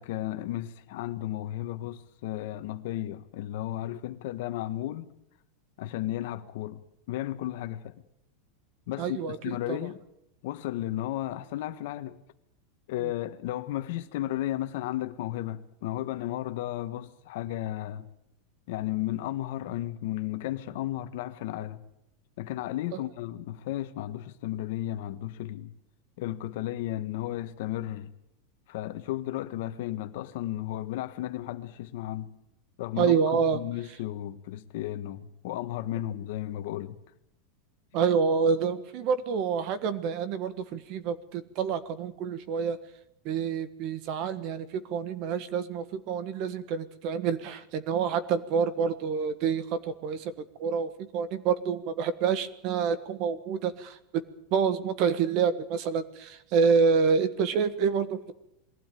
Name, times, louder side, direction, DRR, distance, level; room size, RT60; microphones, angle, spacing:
voice 1, 0.0-5.1 5.8-6.8 7.1-7.9 8.9-9.2 9.4-10.0 10.4-12.2 12.9-18.1 18.7-21.8 22.4-25.7 26.2-28.1 28.7-32.3 32.8-37.0, left 14 dB, 55° left, 1.4 m, -34 dB
voice 2, 9.0-9.8 13.0-13.1 22.9-23.0 33.0-33.6 37.9-42.8 43.2-50.3 50.6-54.2 54.5-58.3, right 6 dB, 40° right, 1.5 m, -27 dB
21.5 x 16.0 x 9.2 m
supercardioid pair, 170°, 0 cm